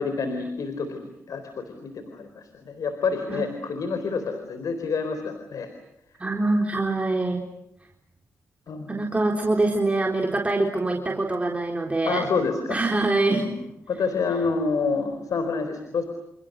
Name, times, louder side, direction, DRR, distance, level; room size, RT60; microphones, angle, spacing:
voice 1, 0.0-5.7 8.7-9.0 12.1-12.8 13.4-13.5 13.9-16.0, left 4 dB, 75° left, 8 dB, 4.0 m, -28 dB
voice 2, 6.2-7.4 8.9-12.3 12.7-13.5, right 2 dB, 20° right, 1 dB, 4.0 m, -24 dB
29.5 x 29.0 x 6.7 m, 0.83 s
cardioid pair, 70°, 6 cm